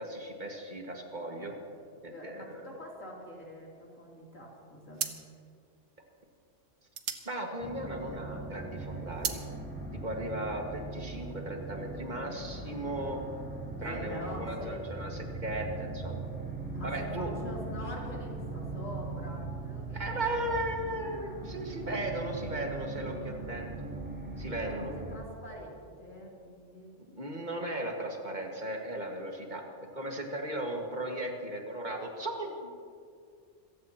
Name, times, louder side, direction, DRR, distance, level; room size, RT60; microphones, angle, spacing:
voice 1, 0.0-1.5 2.0-2.7 7.3-9.4 9.9-13.2 13.8-16.3 16.8-17.3 19.9-23.7 24.4-24.9 27.0-29.6 29.9-32.7, right 1 dB, 35° right, 1 dB, 2.1 m, -36 dB
voice 2, 2.1-5.2 13.8-14.7 16.7-20.5 24.6-26.9, equal, 85° left, -3 dB, 3.7 m, -45 dB
sound 1, 4.2-4.5 4.9-8.3 8.7-9.5, right 7 dB, 90° right, 1.3 m, -38 dB
sound 2, 7.6-25.2, right 2 dB, 10° right, 1.7 m, -40 dB
26.5 x 15.0 x 3.0 m, 2.3 s
omnidirectional pair, 1.3 m